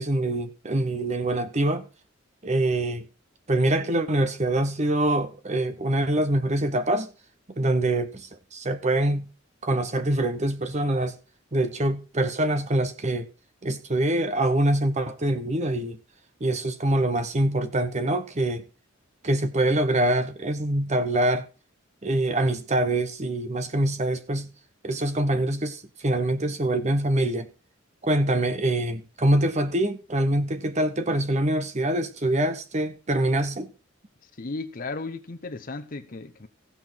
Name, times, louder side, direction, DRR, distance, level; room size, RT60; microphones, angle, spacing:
voice 1, 0.0-1.9 2.4-3.0 3.5-7.1 7.6-9.3 9.6-11.1 11.5-13.3 13.6-16.0 16.4-18.6 19.2-21.5 22.0-24.5 24.8-27.5 28.0-33.7, right 1 dB, 35° right, 1.0 m, -24 dB
voice 2, 34.4-36.5, left 3 dB, 45° left, 0.8 m, -35 dB
16.0 x 5.7 x 4.5 m
head